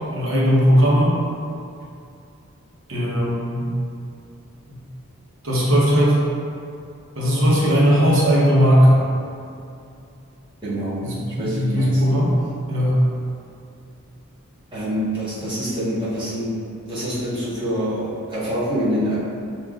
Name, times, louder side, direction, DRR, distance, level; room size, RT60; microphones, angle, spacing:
voice 1, 0.1-1.2 2.9-3.7 4.7-4.8 5.4-6.2 7.2-9.0 11.0-12.3 12.7-13.0, equal, 65° right, -6 dB, 0.9 m, -17 dB
voice 2, 10.6-11.0 11.4-12.0 14.7-19.2, equal, 20° right, -11 dB, 1.3 m, -26 dB
6.5 x 2.4 x 2.4 m, 2.5 s
head